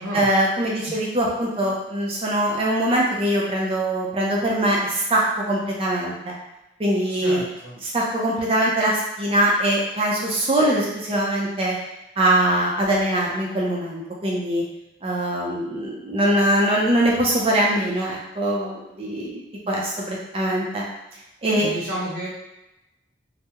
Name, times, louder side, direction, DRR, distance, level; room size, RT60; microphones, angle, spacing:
voice 1, 0.1-6.3 6.8-7.5 7.8-11.8 12.2-14.6 15.0-20.9 21.4-21.7, right 1 dB, 30° right, -3 dB, 0.5 m, -22 dB
voice 2, 7.2-7.7 21.5-22.3, right 1 dB, 60° right, -7 dB, 0.8 m, -31 dB
2.8 x 2.0 x 3.4 m, 0.93 s
head